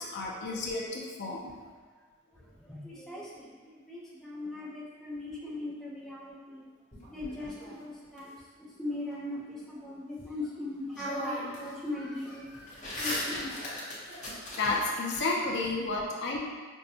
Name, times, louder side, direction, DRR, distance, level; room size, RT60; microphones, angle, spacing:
voice 1, 0.0-1.5 14.6-16.4, left 3 dB, 55° left, -2 dB, 0.5 m, -31 dB
voice 2, 2.3-6.7 7.0-8.3 8.8-13.7, left 2 dB, ahead, -7 dB, 0.6 m, -39 dB
sound 1, 6.9-8.2 10.4-10.5 10.9-11.7 12.0-15.2, left 1 dB, 35° left, 0.9 m, -38 dB
5.4 x 2.1 x 2.7 m, 1.5 s
head